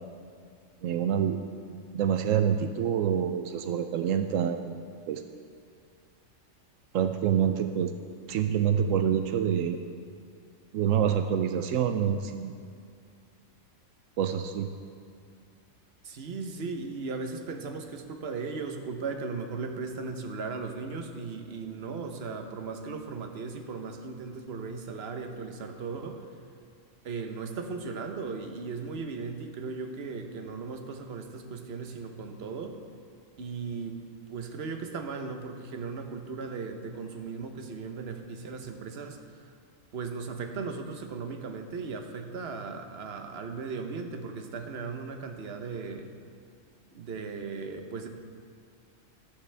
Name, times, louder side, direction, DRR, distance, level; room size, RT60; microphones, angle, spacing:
voice 1, 0.8-1.4 1.7-5.2 6.9-7.9 8.3-9.8 10.7-12.5 14.2-14.7, right 8 dB, 85° right, 7 dB, 1.0 m, -27 dB
voice 2, 16.0-26.2 27.0-32.8 33.4-34.0 34.3-39.2 39.9-46.1 46.9-48.1, right 4 dB, 55° right, 5 dB, 1.1 m, -37 dB
13.5 x 12.5 x 3.4 m, 2.3 s
omnidirectional pair, 1.3 m